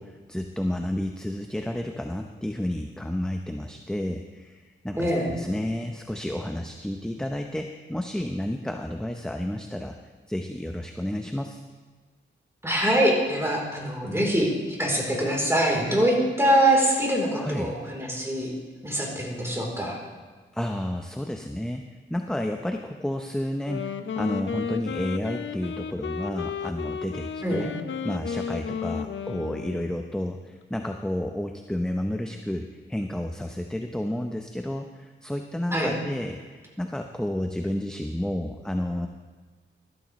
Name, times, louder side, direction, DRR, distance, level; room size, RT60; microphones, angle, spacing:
voice 1, 0.0-10.0 10.3-11.6 17.3-17.7 20.5-21.8 22.1-23.9 24.2-27.7 28.0-39.1, left 1 dB, 5° left, 4 dB, 0.7 m, -31 dB
voice 2, 5.0-5.3 12.6-18.5 18.8-20.0 27.4-27.7 35.7-35.9, right 1 dB, 10° right, -2 dB, 3.6 m, -24 dB
Wind instrument woodwind instrument, 23.5-30.1, left 7 dB, 65° left, 0.6 m, -33 dB
14.0 x 13.0 x 3.1 m, 1.5 s
cardioid pair, 80°, 21 cm